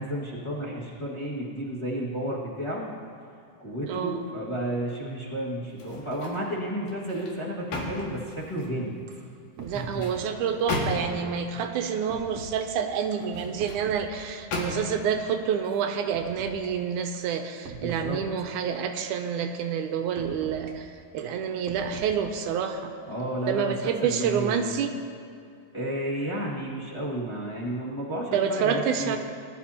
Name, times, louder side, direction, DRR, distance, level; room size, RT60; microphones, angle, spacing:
voice 1, 0.0-2.9 3.6-9.0 9.7-10.1 17.8-18.2 23.1-24.6 25.7-29.2, right 1 dB, 15° left, -6 dB, 0.9 m, -32 dB
voice 2, 3.9-4.2 9.6-22.9 23.5-24.9 28.3-29.2, right 7 dB, 80° right, 6 dB, 2.0 m, -28 dB
sound 1, 5.7-6.5 6.9-8.8 9.6-11.3 13.1-13.9 14.5-15.1 15.6-15.8, left 2 dB, 90° left, 3.5 m, -35 dB
sound 2, 8.6-8.7 9.1-9.3 9.6-10.3 11.1-11.3 12.1-12.7 13.1-14.5 15.1-15.3 16.1-16.7 17.1-17.3 17.6-18.5 19.2-19.4 20.2-20.7 21.2-22.5 23.2-23.4 24.2-24.6, right 4 dB, 65° right, 1.6 m, -45 dB
21.0 x 12.0 x 2.9 m, 2.4 s
omnidirectional pair, 3.7 m